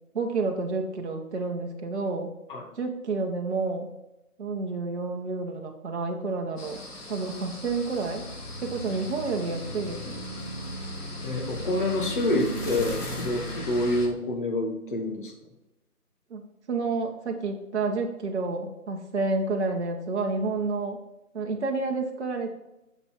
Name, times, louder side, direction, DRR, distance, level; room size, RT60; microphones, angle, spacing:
voice 1, 0.1-2.3 2.8-3.9 4.4-6.8 7.1-8.3 8.6-10.2 16.3-21.0 21.3-22.5, right 3 dB, 50° right, 2 dB, 1.1 m, -30 dB
sound 1, 6.6-14.1, equal, 80° left, 2.7 m, -36 dB
voice 2, 11.2-15.3, left 1 dB, 35° left, 1 dB, 1.4 m, -27 dB
6.9 x 5.3 x 4.4 m, 0.93 s
figure-of-eight pair, 160°, 45 cm